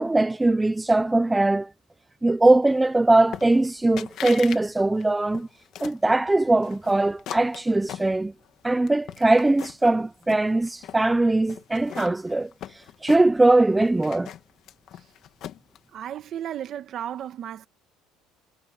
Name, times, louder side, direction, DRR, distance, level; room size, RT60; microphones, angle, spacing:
voice 1, 0.0-1.7 2.2-5.5 5.8-8.3 8.6-12.5 13.0-14.3, right 2 dB, 10° right, 0.6 m, -21 dB
sound 1, 3.3-3.7 4.0-4.6 4.9-6.0 6.6-8.5 8.9-9.9 10.2-11.0 11.5-13.5 13.8-15.8, left 11 dB, 45° left, 1.8 m, -39 dB
voice 2, 15.9-17.7, right 10 dB, 40° right, 1.4 m, -34 dB
cardioid pair, 160°, 0 cm